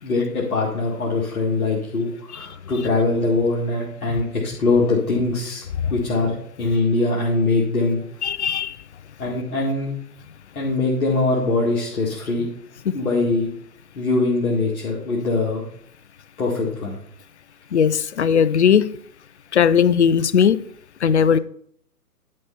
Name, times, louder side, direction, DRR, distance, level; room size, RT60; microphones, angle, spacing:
voice 1, 0.0-5.6 5.9-8.0 9.2-9.9 10.5-12.5 12.9-13.5 13.9-15.6 16.4-17.0, left 3 dB, 60° left, 2.2 m, -22 dB
voice 2, 8.2-8.8 12.9-13.0 17.7-18.9 19.5-20.6 21.0-21.4, left 7 dB, 45° left, 0.5 m, -18 dB
11.0 x 4.4 x 5.6 m
figure-of-eight pair, 135°, 48 cm